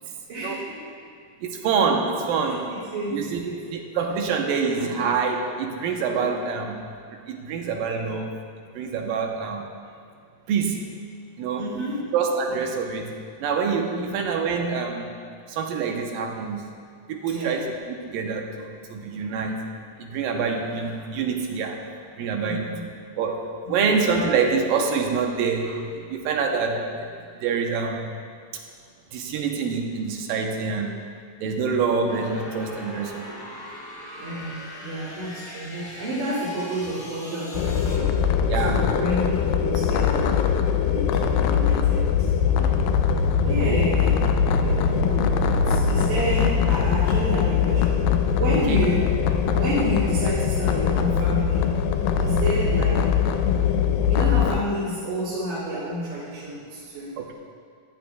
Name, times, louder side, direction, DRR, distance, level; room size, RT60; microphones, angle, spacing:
voice 1, 0.3-0.9 2.4-3.8 11.6-12.1 13.9-14.1 17.3-17.6 22.5-22.9 23.6-23.9 34.2-38.2 38.5-40.5 40.8-42.8 43.4-48.0 48.4-49.1 49.5-51.7 52.2-53.2 54.1-57.2, right 1 dB, 55° right, -13 dB, 3.5 m, -30 dB
voice 2, 1.4-2.7 3.1-3.4 3.7-8.3 8.7-9.7 10.5-11.0 11.4-11.6 12.1-13.1 13.4-15.1 15.5-16.7 17.1-19.6 20.0-21.8 22.2-22.8 23.2-26.9 27.4-28.1 29.1-31.0 31.4-33.4 38.5-38.9 48.7-48.8 49.5-49.6 53.5-53.7 57.2-57.3, right 5 dB, 85° right, 2 dB, 2.6 m, -26 dB
sound 1, 32.1-38.0, left 1 dB, 35° left, 1.7 m, -40 dB
sound 2, 37.5-54.6, left 7 dB, 85° left, 2.3 m, -21 dB
15.0 x 11.5 x 2.3 m, 2.1 s
omnidirectional pair, 4.0 m